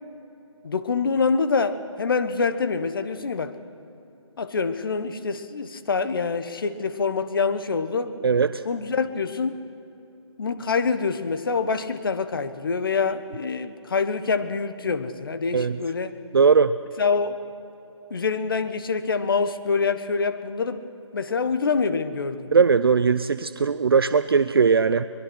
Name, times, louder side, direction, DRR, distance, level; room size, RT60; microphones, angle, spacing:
voice 1, 0.6-3.5 4.4-8.1 8.6-9.6 10.4-16.1 17.0-17.4 18.1-22.5, left 5 dB, 45° left, 11 dB, 1.3 m, -25 dB
voice 2, 8.2-8.6 15.5-15.8 16.3-16.7 22.5-25.1, right 5 dB, 50° right, 13 dB, 0.5 m, -19 dB
23.0 x 21.5 x 6.4 m, 2.9 s
figure-of-eight pair, 165°, 16 cm